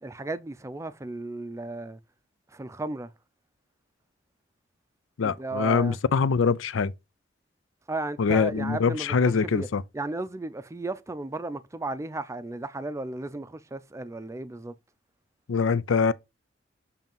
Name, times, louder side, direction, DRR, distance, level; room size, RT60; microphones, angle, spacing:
voice 1, 0.0-2.0 2.5-3.1 5.2-6.0 7.9-9.7 9.9-14.7, right 2 dB, 15° right, 0.4 m, -34 dB
voice 2, 5.2-6.9 8.2-9.8 15.5-16.1, left 5 dB, 85° left, 0.5 m, -23 dB
7.3 x 2.8 x 5.3 m
head